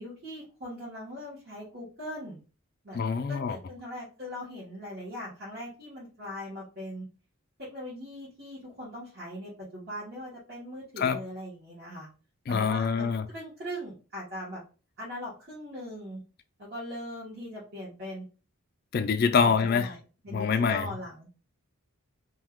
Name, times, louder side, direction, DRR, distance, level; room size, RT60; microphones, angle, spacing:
voice 1, 0.0-2.4 2.8-3.0 3.3-7.1 7.6-12.1 12.5-14.6 15.0-16.2 16.6-18.2 19.4-20.0 20.2-21.3, left 1 dB, 50° right, 1.3 m, -40 dB
voice 2, 2.9-3.6 11.0-11.2 12.5-13.3 18.9-19.9 20.3-20.9, left 5 dB, 45° left, 0.3 m, -25 dB
2.7 x 2.3 x 3.5 m
head